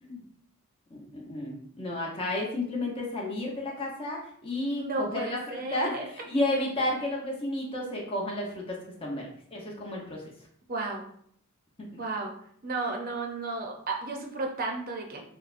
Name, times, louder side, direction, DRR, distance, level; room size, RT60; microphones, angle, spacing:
voice 1, 0.9-10.2 11.9-12.0, left 1 dB, 25° left, -2 dB, 0.9 m, -32 dB
voice 2, 4.8-6.1 10.7-11.0 12.0-12.3 12.6-15.2, right 3 dB, 40° right, 2 dB, 0.6 m, -33 dB
6.3 x 2.1 x 2.6 m, 0.65 s
head